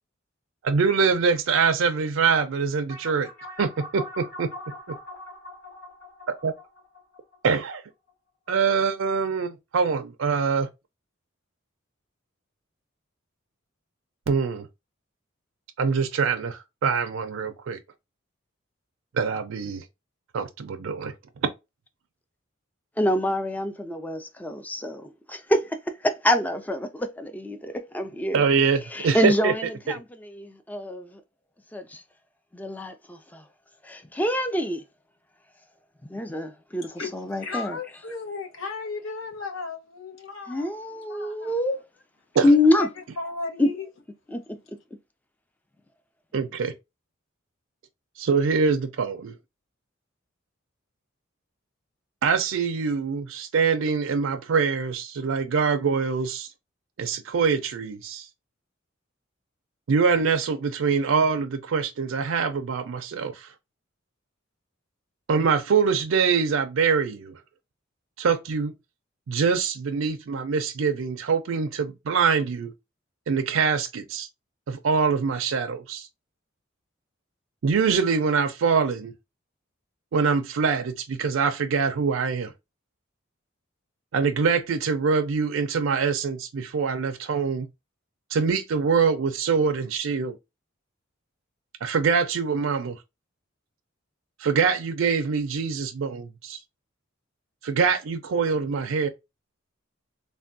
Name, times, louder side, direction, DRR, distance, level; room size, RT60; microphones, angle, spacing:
voice 1, 0.6-3.3 3.6-4.5 6.4-6.5 7.4-7.8 8.5-10.7 14.3-14.7 15.8-17.8 19.1-19.8 20.3-21.1 21.4-21.5 28.3-29.5 42.3-42.5 46.3-46.7 48.2-49.3 52.2-56.5 57.0-58.3 59.9-63.5 65.3-67.4 68.2-68.7 69.3-72.7 73.3-74.3 74.7-76.1 77.6-79.1 80.1-82.5 84.1-87.7 88.3-90.4 91.8-93.0 94.4-96.6 97.6-99.1, right 5 dB, 70° right, 0.4 m, -24 dB
sound 1, 2.9-7.7, left 1 dB, 50° left, 1.8 m, -41 dB
voice 2, 23.0-28.5 28.9-31.2 31.7-32.0 32.5-33.4 33.8-34.8 36.1-37.8 40.5-41.8 42.4-42.9 43.6-43.7 44.3-44.4, left 1 dB, 10° left, 0.3 m, -26 dB
voice 3, 37.4-41.5 42.7-42.9 43.2-43.9, left 4 dB, 75° left, 0.9 m, -35 dB
3.4 x 2.2 x 2.5 m
head